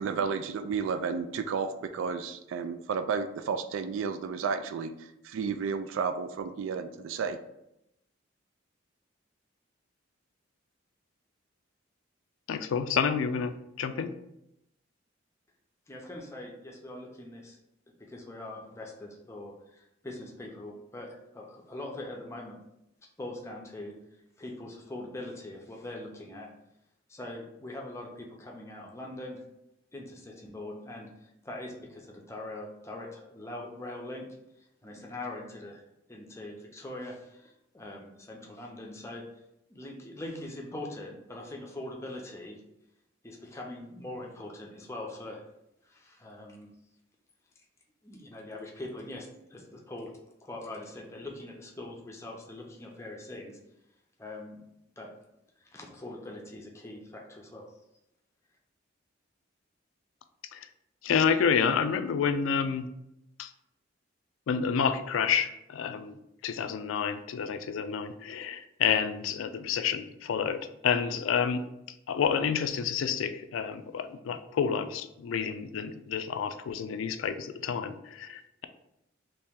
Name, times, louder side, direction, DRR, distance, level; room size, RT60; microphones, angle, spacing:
voice 1, 0.0-4.9 5.2-7.4, right 5 dB, 80° right, 8 dB, 0.3 m, -32 dB
voice 2, 12.5-14.1 60.5-60.7 61.0-62.9 63.4-63.5 64.5-66.2 66.4-71.7 72.1-78.7, left 7 dB, 80° left, 10 dB, 0.3 m, -29 dB
voice 3, 15.9-17.6 18.1-22.6 23.2-23.9 24.4-26.5 27.1-29.4 29.9-34.2 34.8-35.8 36.1-39.2 39.7-42.6 43.2-45.4 45.9-46.7 48.0-50.1 50.4-53.6 54.2-54.6 55.0-55.1 55.7-57.7, left 1 dB, 15° left, 0 dB, 0.5 m, -42 dB
3.1 x 2.9 x 3.5 m, 0.83 s
head